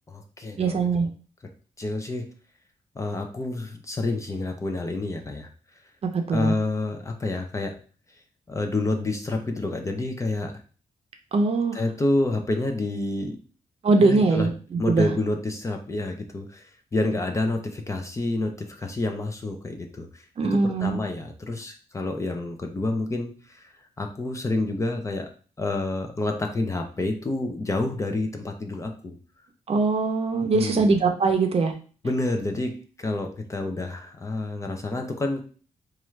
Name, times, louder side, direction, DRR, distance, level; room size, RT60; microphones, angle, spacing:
voice 1, 0.1-1.1 1.8-2.3 3.0-5.5 6.3-7.8 8.5-10.5 11.7-13.4 14.0-14.5 14.8-20.2 20.5-23.7 24.0-25.3 25.6-29.2 30.4-30.9 32.0-35.4, left 2 dB, 20° left, 4 dB, 0.5 m, -28 dB
voice 2, 0.6-1.1 6.1-6.5 11.3-11.8 13.8-15.1 20.4-21.0 29.7-31.7, right 3 dB, 45° right, 4 dB, 0.6 m, -22 dB
4.3 x 2.4 x 3.1 m, 0.39 s
wide cardioid pair, 140°, 14 cm